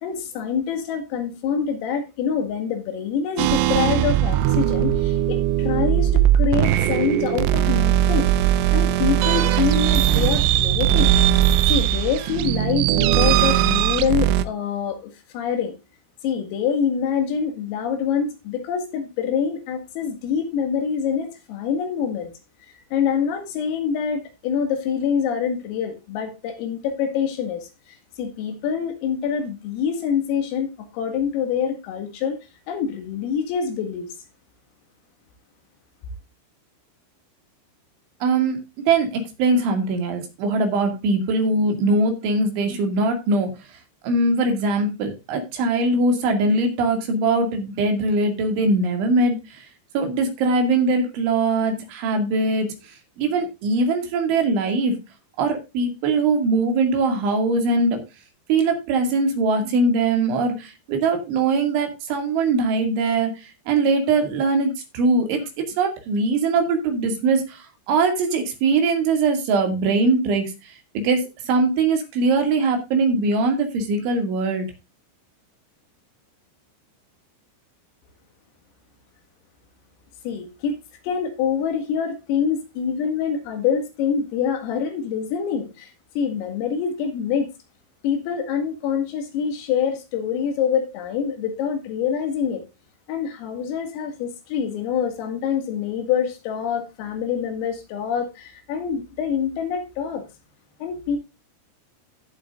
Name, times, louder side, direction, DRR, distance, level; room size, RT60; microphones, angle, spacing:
voice 1, 0.0-8.3 8.7-11.1 11.7-15.7 16.2-22.3 22.9-30.7 30.9-32.4 32.7-34.1 80.2-80.8 81.0-87.5 88.0-92.6 93.1-100.2 100.8-101.2, left 7 dB, 85° left, 6 dB, 4.7 m, -25 dB
sound 1, 3.4-14.4, right 12 dB, 85° right, 2.4 m, -19 dB
voice 2, 38.2-38.6 38.9-43.5 44.0-49.7 49.9-52.8 53.2-55.0 55.4-58.0 58.5-65.5 65.8-74.7, right 3 dB, 70° right, 4 dB, 4.5 m, -21 dB
18.0 x 7.7 x 2.5 m, 0.26 s
omnidirectional pair, 5.9 m